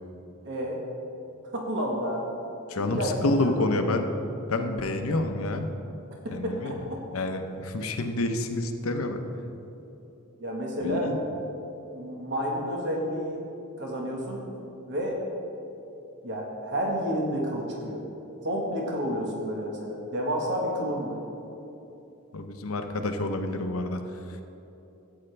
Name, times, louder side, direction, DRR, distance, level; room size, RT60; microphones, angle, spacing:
voice 1, 0.5-0.8 1.5-2.3 2.8-3.7 6.2-7.0 10.4-11.1 11.9-13.4 13.8-14.5 14.9-15.2 16.2-18.0 18.4-21.2, equal, 55° right, -1 dB, 1.4 m, -30 dB
voice 2, 2.7-4.1 4.5-5.7 6.3-6.8 7.1-9.2 10.8-11.2 22.3-24.0, left 2 dB, 75° left, 6 dB, 0.8 m, -28 dB
14.0 x 8.8 x 3.3 m, 2.9 s
head